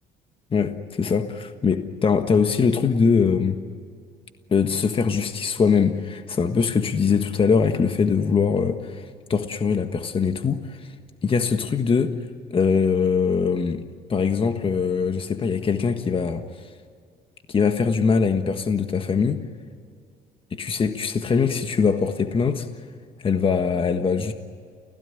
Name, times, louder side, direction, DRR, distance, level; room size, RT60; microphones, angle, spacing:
voice 1, 0.5-3.6 4.5-9.0 9.3-10.8 11.2-12.2 12.5-13.8 14.1-16.4 17.5-19.4 20.5-22.7 23.2-24.3, left 5 dB, 30° left, 7 dB, 1.5 m, -22 dB
30.0 x 16.5 x 9.9 m, 2.2 s
cardioid pair, 110°, 17 cm